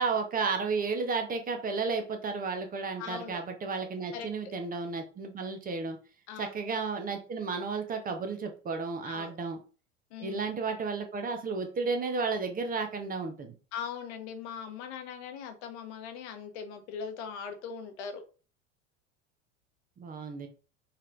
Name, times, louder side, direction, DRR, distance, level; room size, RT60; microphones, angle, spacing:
voice 1, 0.0-6.0 6.4-9.6 10.2-13.5 20.0-20.5, right 4 dB, 20° right, 5 dB, 0.7 m, -33 dB
voice 2, 3.0-3.4 4.1-4.5 6.3-6.6 9.1-9.4 10.1-10.5 13.7-18.2, left 7 dB, 55° left, 7 dB, 1.0 m, -40 dB
5.7 x 3.1 x 2.5 m, 0.36 s
figure-of-eight pair, 80°, 40 cm